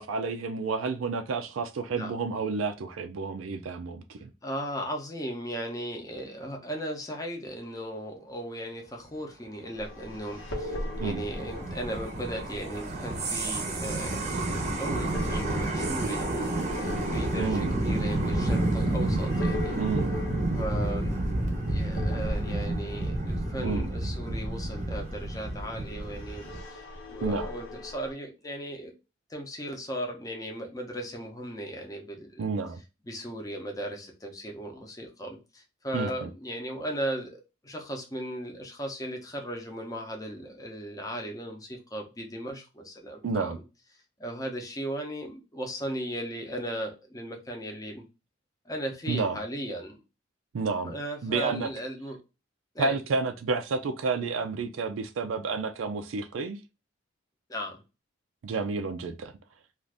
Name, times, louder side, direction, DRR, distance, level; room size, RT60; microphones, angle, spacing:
voice 1, 0.0-4.3 11.0-11.2 17.4-17.7 19.8-20.1 23.6-23.9 27.2-27.5 32.4-32.8 35.9-36.3 43.2-43.6 49.1-49.4 50.5-50.9 51.2-51.7 52.8-56.6 58.4-59.3, right 4 dB, 90° right, 0.4 m, -30 dB
voice 2, 4.4-14.5 14.8-19.9 20.5-28.9 29.3-32.4 33.0-43.6 44.2-48.0 48.7-50.0 50.8-52.2 52.7-53.0 57.5-57.8, equal, 20° left, 0.7 m, -37 dB
sound 1, 9.8-28.1, left 1 dB, 90° left, 1.0 m, -41 dB
sound 2, 10.1-26.6, right 1 dB, 35° right, 0.7 m, -30 dB
2.5 x 2.5 x 3.3 m
head